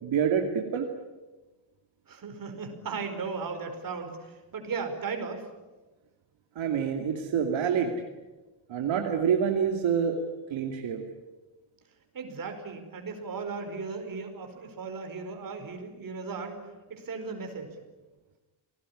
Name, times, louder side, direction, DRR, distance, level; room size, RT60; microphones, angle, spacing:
voice 1, 0.0-0.9 6.6-7.9 8.7-10.2 10.5-11.0, right 7 dB, 70° right, 3 dB, 2.6 m, -27 dB
voice 2, 2.1-5.5 12.1-16.6 16.9-17.8, right 4 dB, 45° right, 6 dB, 4.9 m, -36 dB
29.0 x 19.5 x 10.0 m, 1.2 s
cardioid pair, 165°, 48 cm